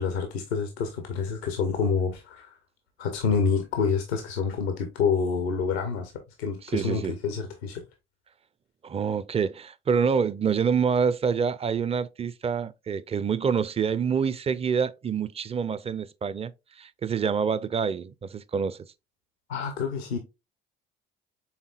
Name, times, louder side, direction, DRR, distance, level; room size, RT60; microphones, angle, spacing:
voice 1, 0.0-2.6 3.0-6.1 6.4-7.8 19.5-20.2, left 5 dB, 85° left, 0.7 m, -27 dB
voice 2, 6.7-7.1 8.8-16.5 16.8-18.8, right 6 dB, 20° right, 0.4 m, -26 dB
5.7 x 3.6 x 2.3 m
hypercardioid pair, 50°, 31 cm